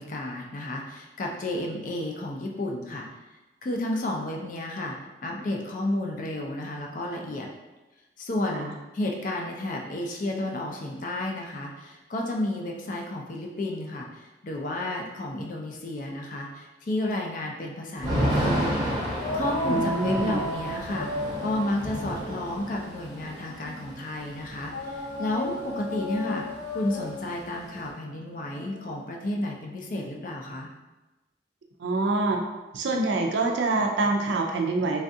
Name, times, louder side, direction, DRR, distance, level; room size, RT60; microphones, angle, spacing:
voice 1, 0.0-3.1 3.6-5.0 5.2-7.5 8.2-18.8 19.3-21.1 21.4-26.4 26.7-30.7, left 1 dB, 45° left, 0 dB, 0.4 m, -32 dB
Thunder / Rain, 18.0-25.9 26.1-26.2 26.5-27.9, equal, 20° right, 0.7 m, -31 dB
sound 1, 19.2-23.8 24.7-29.4, left 1 dB, 85° left, 1.2 m, -35 dB
voice 2, 19.7-20.4 31.8-32.4 32.7-35.0, right 3 dB, 80° right, 2 dB, 0.4 m, -25 dB
3.3 x 2.4 x 2.6 m, 1.1 s
head